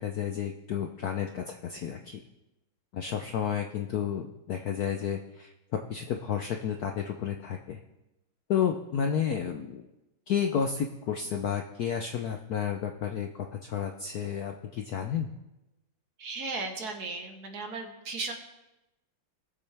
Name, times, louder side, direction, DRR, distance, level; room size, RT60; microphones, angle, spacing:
voice 1, 0.0-2.2 2.9-7.8 8.5-9.9 10.3-13.3 13.6-15.3, left 8 dB, 70° left, 4 dB, 0.9 m, -31 dB
voice 2, 16.2-18.3, right 3 dB, 55° right, 4 dB, 1.5 m, -36 dB
20.0 x 7.5 x 3.4 m, 0.97 s
omnidirectional pair, 2.3 m